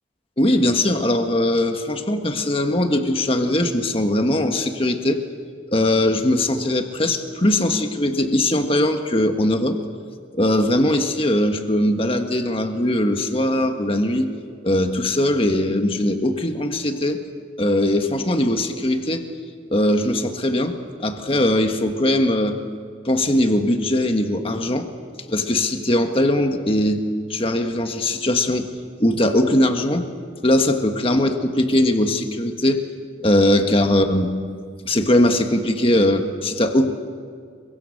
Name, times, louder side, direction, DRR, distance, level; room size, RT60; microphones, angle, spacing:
voice 1, 0.4-5.2 5.7-9.8 10.3-14.3 14.6-17.2 17.6-19.2 19.7-22.6 23.0-24.9 25.3-27.0 27.3-28.7 29.0-30.1 30.4-32.8 33.2-34.3 34.8-36.9, left 1 dB, 30° left, 5 dB, 1.6 m, -20 dB
28.5 x 24.0 x 6.6 m, 2.1 s
head